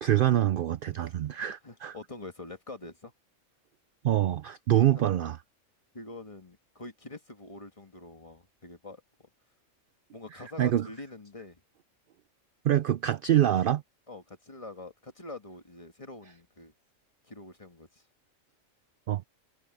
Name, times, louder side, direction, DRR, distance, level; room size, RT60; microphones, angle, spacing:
voice 1, 0.0-1.9 4.0-5.4 10.6-10.9 12.6-13.8 19.1-19.2, right 12 dB, 65° right, 0.5 m, -25 dB
voice 2, 0.9-3.1 4.9-5.1 5.9-9.0 10.1-11.6 14.1-16.7 17.2-18.0, left 2 dB, 25° left, 1.7 m, -45 dB
omnidirectional pair, 1.3 m